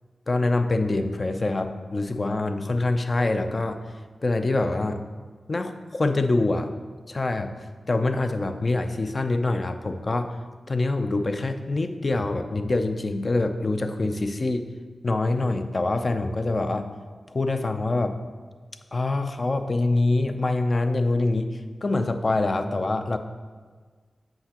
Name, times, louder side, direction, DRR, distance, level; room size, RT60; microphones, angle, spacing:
voice 1, 0.3-3.8 4.2-5.0 5.5-6.7 7.1-7.5 7.9-10.3 10.7-14.7 15.0-16.9 17.3-18.2 18.9-21.5 21.8-23.2, left 2 dB, 40° left, 7 dB, 0.5 m, -25 dB
7.8 x 5.7 x 2.9 m, 1.5 s
wide cardioid pair, 70°, 0 cm